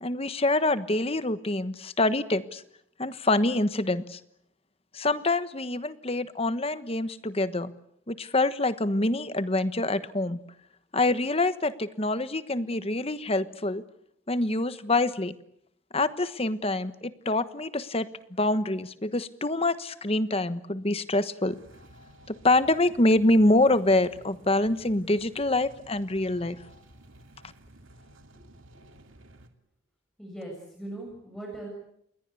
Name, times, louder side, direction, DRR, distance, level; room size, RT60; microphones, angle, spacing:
voice 1, 0.0-2.6 3.0-4.2 4.9-7.7 8.1-10.4 10.9-13.8 14.3-15.3 15.9-18.1 18.4-21.6 22.3-26.6, left 2 dB, 30° left, 13 dB, 1.2 m, -25 dB
sound 1, 21.5-29.5, right 1 dB, 80° right, 2.7 m, -53 dB
voice 2, 30.2-31.7, right 1 dB, 5° left, -1 dB, 7.3 m, -39 dB
28.5 x 22.0 x 8.4 m, 0.74 s
head